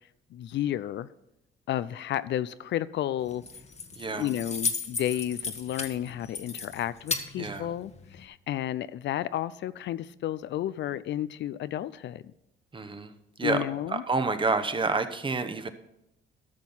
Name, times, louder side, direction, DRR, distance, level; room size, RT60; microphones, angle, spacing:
voice 1, 0.3-1.1 1.7-3.4 4.1-12.2 13.4-14.0, left 12 dB, 65° left, 0.4 m, -32 dB
Keys jangling, 3.2-8.3, left 4 dB, 35° left, 1.2 m, -36 dB
voice 2, 4.0-4.3 7.4-7.7 12.7-13.1 13.4-15.7, right 3 dB, 25° right, 1.0 m, -29 dB
13.0 x 6.3 x 5.6 m
cardioid pair, 90°, 20 cm